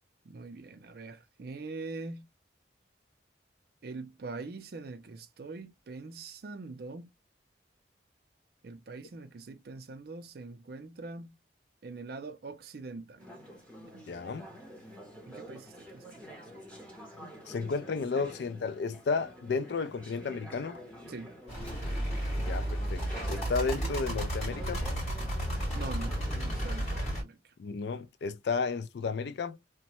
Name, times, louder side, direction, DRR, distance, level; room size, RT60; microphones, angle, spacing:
voice 1, 0.2-2.3 3.8-7.1 8.6-11.4 11.8-13.3 13.8-14.1 15.3-16.2 21.1-21.3 25.7-27.4, right 3 dB, 55° right, 0.4 m, -43 dB
Conversation / Chatter, 13.2-27.2, equal, 5° left, 0.8 m, -48 dB
voice 2, 14.1-14.5 17.5-20.8 22.4-24.9 27.6-29.6, left 4 dB, 65° left, 0.4 m, -33 dB
sound 1, 21.5-27.2, right 1 dB, 35° left, 1.9 m, -33 dB
3.0 x 2.1 x 2.8 m
head